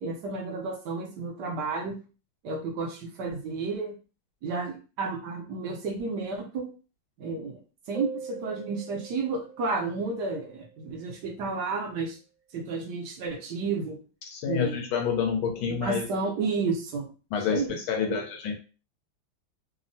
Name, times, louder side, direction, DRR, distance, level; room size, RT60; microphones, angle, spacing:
voice 1, 0.0-2.0 2.4-3.9 4.4-6.7 7.2-7.6 7.9-12.2 12.5-14.0 14.5-14.8 15.7-17.1 17.5-17.7 18.0-18.2, right 4 dB, 70° right, 1 dB, 1.1 m, -31 dB
sound 1, 7.9-11.2, right 6 dB, 25° left, 0.3 m, -42 dB
voice 2, 14.3-16.1 17.3-18.5, left 6 dB, 85° left, 2 dB, 1.4 m, -28 dB
3.5 x 2.0 x 2.5 m, 0.35 s
omnidirectional pair, 2.2 m